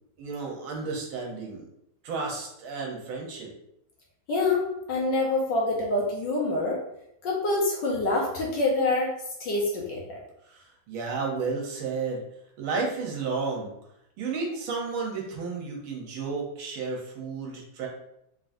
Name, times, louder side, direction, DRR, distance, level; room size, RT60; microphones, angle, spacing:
voice 1, 0.2-1.6 2.0-3.5 10.5-12.2 12.6-13.7 14.2-17.9, right 4 dB, 70° right, 0 dB, 1.6 m, -32 dB
voice 2, 4.3-6.8 7.2-9.1 9.4-10.2, left 2 dB, 65° left, -2 dB, 1.3 m, -26 dB
3.8 x 3.7 x 2.6 m, 0.79 s
omnidirectional pair, 2.4 m